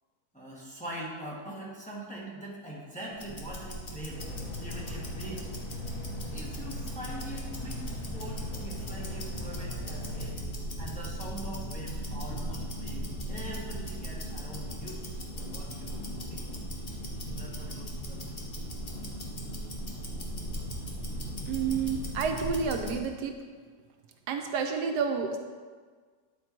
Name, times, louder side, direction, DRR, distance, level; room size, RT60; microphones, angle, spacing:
voice 1, 0.3-4.2 4.6-5.5 6.3-7.8 8.1-10.3 10.8-15.2 15.5-15.9 16.3-16.5 17.3-17.9, right 1 dB, 5° left, -6 dB, 1.3 m, -42 dB
Tick-tock, 3.1-23.1, equal, 35° left, 1.1 m, -38 dB
sound 1, 4.1-10.3, left 1 dB, 80° left, 3.3 m, -40 dB
voice 2, 21.5-23.3 24.3-25.4, right 5 dB, 80° right, 4 dB, 1.2 m, -30 dB
9.7 x 4.5 x 4.4 m, 1.5 s
omnidirectional pair, 1.8 m